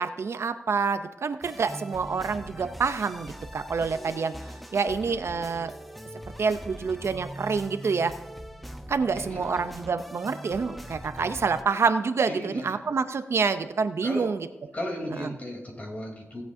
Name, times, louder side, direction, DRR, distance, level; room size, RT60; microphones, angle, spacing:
voice 1, 0.0-4.3 4.7-5.7 6.4-8.1 8.9-14.4, right 5 dB, 70° right, 10 dB, 0.5 m, -27 dB
sound 1, 1.4-11.6, equal, ahead, 0.7 m, -42 dB
voice 2, 9.1-9.7 12.3-12.8 14.0-14.3 14.7-16.4, left 1 dB, 30° left, 0 dB, 3.3 m, -35 dB
18.0 x 8.0 x 2.7 m, 0.99 s
wide cardioid pair, 80°, 5 cm